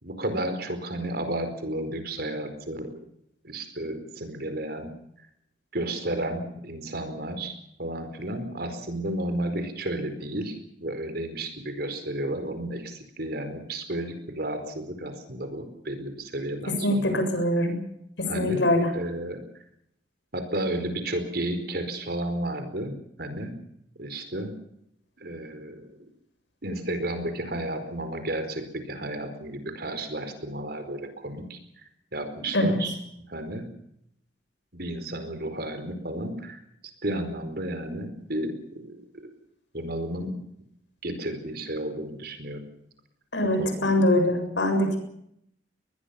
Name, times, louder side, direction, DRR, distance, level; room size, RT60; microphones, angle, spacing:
voice 1, 0.0-2.9 3.4-4.9 5.7-7.5 7.8-17.2 18.3-18.6 18.9-19.4 20.3-23.5 24.0-24.5 25.2-25.9 26.6-31.6 32.1-32.9 33.3-33.7 34.7-36.6 37.0-39.0 39.7-40.4 41.0-42.6 43.4-43.9, right 1 dB, 60° right, 8 dB, 4.7 m, -32 dB
voice 2, 16.7-17.7 18.2-18.9 32.5-32.8 43.3-45.0, left 1 dB, 85° left, 6 dB, 7.3 m, -23 dB
22.5 x 20.5 x 7.2 m, 0.74 s
head